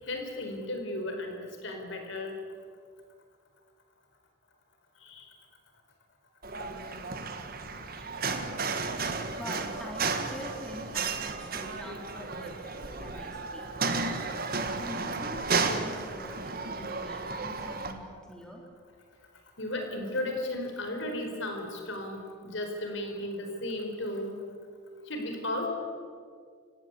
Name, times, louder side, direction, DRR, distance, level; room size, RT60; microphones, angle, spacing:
voice 1, 0.1-1.4 1.6-2.4 5.0-5.3 14.4-14.7 19.6-24.4 25.1-25.7, left 1 dB, 65° left, 4 dB, 4.5 m, -35 dB
sound 1, 6.4-17.9, right 4 dB, 45° right, 1.8 m, -33 dB
voice 2, 7.9-8.3 9.2-13.6 14.7-18.6, equal, 5° left, -1 dB, 3.5 m, -45 dB
29.5 x 17.0 x 8.4 m, 2.1 s
head